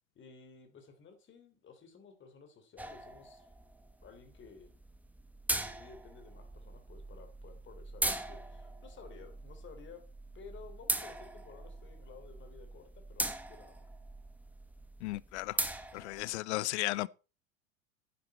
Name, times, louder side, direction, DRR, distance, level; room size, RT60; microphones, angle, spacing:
voice 1, 0.1-3.5 4.0-4.7 5.6-10.0 10.3-13.9, left 5 dB, 30° left, 3.4 m, -54 dB
sound 1, 2.8-16.4, right 1 dB, 5° right, 1.2 m, -40 dB
voice 2, 15.0-15.6 15.9-17.1, left 19 dB, 55° left, 0.5 m, -35 dB
10.5 x 9.4 x 4.3 m
hypercardioid pair, 90°, 40 cm